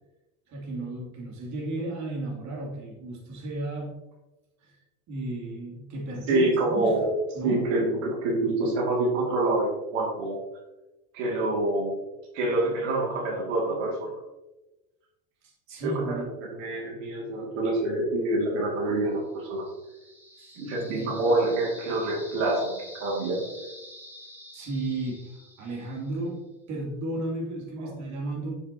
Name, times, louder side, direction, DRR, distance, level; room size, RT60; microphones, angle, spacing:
voice 1, 0.5-4.0 4.6-4.8 5.1-7.0 7.3-7.6 15.7-16.3 20.4-20.6 21.0-21.1 24.5-25.3 25.6-26.4 26.7-28.5, right 2 dB, 50° right, -2 dB, 2.5 m, -33 dB
voice 2, 6.3-7.1 7.4-10.4 11.1-12.0 12.3-14.2 15.8-19.7 20.6-23.4 27.8-27.9, right 2 dB, 85° right, -2 dB, 2.2 m, -26 dB
sound 1, 19.3-26.3, equal, 5° right, 1.4 m, -47 dB
7.2 x 6.7 x 2.8 m, 1.0 s
supercardioid pair, 115°, 36 cm